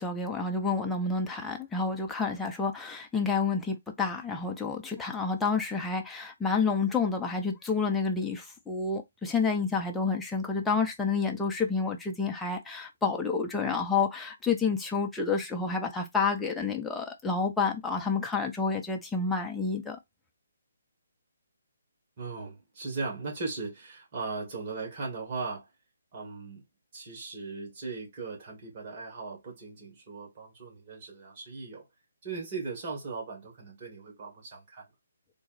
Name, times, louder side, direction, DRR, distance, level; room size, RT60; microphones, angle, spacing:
voice 1, 0.0-20.0, left 4 dB, 5° left, 0.7 m, -29 dB
voice 2, 22.2-25.7 26.1-26.6 26.9-31.9 32.2-34.9, right 4 dB, 35° right, 1.9 m, -38 dB
3.8 x 2.3 x 4.1 m
figure-of-eight pair, 140°, 0 cm